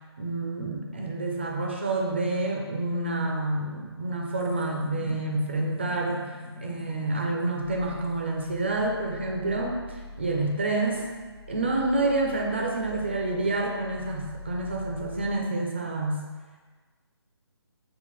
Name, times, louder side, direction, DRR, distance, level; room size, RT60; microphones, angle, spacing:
voice 1, 0.2-6.3 6.6-9.8 10.2-11.1 11.5-16.2, right 2 dB, 25° right, 0 dB, 0.3 m, -28 dB
sound 1, 0.6-10.7, left 1 dB, 55° left, 0.9 m, -45 dB
sound 2, 7.6-15.3, left 2 dB, 80° left, 1.4 m, -44 dB
5.5 x 2.2 x 3.0 m, 1.4 s
hypercardioid pair, 170°, 14 cm